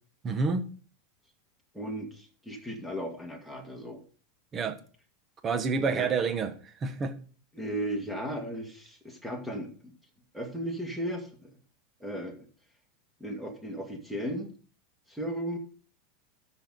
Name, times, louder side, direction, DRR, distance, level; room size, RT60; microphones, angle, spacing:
voice 1, 0.2-0.7 4.5-4.8 5.4-7.1, right 4 dB, 25° right, 1.2 m, -29 dB
voice 2, 1.7-4.0 5.8-6.1 7.5-9.9 10.3-11.5 12.0-12.4 13.2-14.5 15.1-15.6, equal, 5° right, 2.1 m, -36 dB
13.0 x 6.4 x 3.9 m
supercardioid pair, 150°, 0 cm